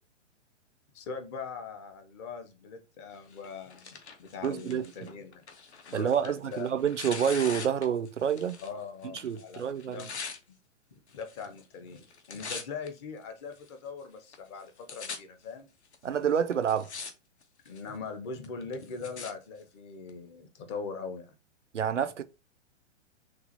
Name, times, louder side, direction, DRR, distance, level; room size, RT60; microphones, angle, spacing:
voice 1, 0.9-5.4 5.9-6.7 8.6-10.1 10.5-10.6 10.9-15.7 17.6-21.3, left 5 dB, 25° left, 0.6 m, -41 dB
Tearing, 3.3-8.8 9.0-10.4 11.1-11.6 11.9-12.9 13.5-13.6 14.3-14.4 14.6-15.2 15.9-16.0 16.5-17.1 17.4-17.9 18.4-19.3 20.1-20.2, left 5 dB, 65° left, 0.9 m, -42 dB
voice 2, 4.4-5.1 5.9-8.6 9.1-10.1 16.0-16.9 21.7-22.2, right 8 dB, 75° right, 0.5 m, -28 dB
6.1 x 2.4 x 2.7 m
figure-of-eight pair, 115°, 37 cm